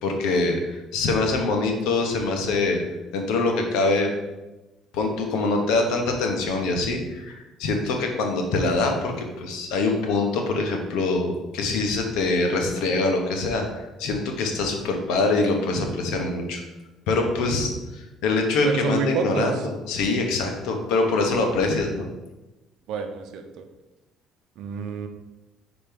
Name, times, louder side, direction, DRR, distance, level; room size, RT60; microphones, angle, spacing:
voice 1, 0.0-2.8 3.1-4.1 4.9-16.6 17.1-22.1, left 3 dB, 80° left, 3 dB, 1.2 m, -24 dB
voice 2, 18.6-19.7 22.9-23.7 24.6-25.1, right 5 dB, 65° right, 6 dB, 0.8 m, -28 dB
5.7 x 4.2 x 5.3 m, 1.1 s
cardioid pair, 140°, 0 cm